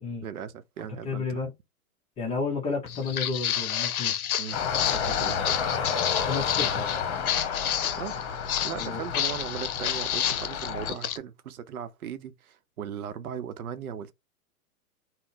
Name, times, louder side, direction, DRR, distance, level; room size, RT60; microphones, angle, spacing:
voice 1, 0.2-1.5 4.4-5.4 8.0-8.2 8.6-14.1, right 8 dB, 75° right, 0.7 m, -38 dB
voice 2, 1.0-1.5 2.2-4.1 6.1-6.9 8.7-9.0, left 4 dB, 15° left, 0.6 m, -31 dB
Walk footsteps, 2.9-11.2, left 10 dB, 70° left, 0.7 m, -30 dB
sound 1, 4.5-10.9, left 6 dB, 50° left, 1.0 m, -31 dB
3.8 x 2.1 x 2.6 m
hypercardioid pair, 120°, 44 cm